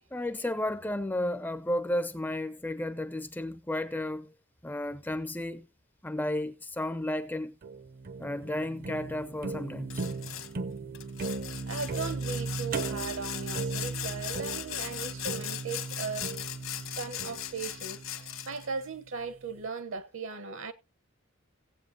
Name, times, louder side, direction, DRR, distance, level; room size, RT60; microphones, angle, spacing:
voice 1, 0.1-4.3 4.6-5.7 6.0-7.6 8.2-10.1, left 1 dB, 10° left, 0.4 m, -33 dB
sound 1, 7.6-18.8, right 3 dB, 45° right, 0.6 m, -37 dB
Sawing, 9.9-10.5 10.9-18.7, left 11 dB, 75° left, 1.3 m, -39 dB
voice 2, 11.7-16.3 17.0-20.7, right 5 dB, 70° right, 1.0 m, -37 dB
17.0 x 7.9 x 2.8 m
head